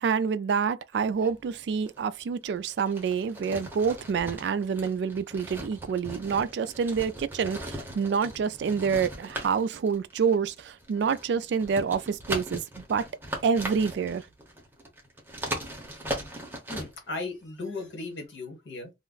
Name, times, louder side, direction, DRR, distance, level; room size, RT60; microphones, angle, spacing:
voice 1, 0.0-13.0 13.4-14.2, right 6 dB, 70° right, 0.3 m, -27 dB
sound 1, 0.9-2.0 2.3-17.2 17.4-17.5, right 1 dB, 10° right, 0.7 m, -39 dB
voice 2, 16.7-18.9, left 3 dB, 90° left, 1.3 m, -36 dB
2.4 x 2.0 x 3.8 m
head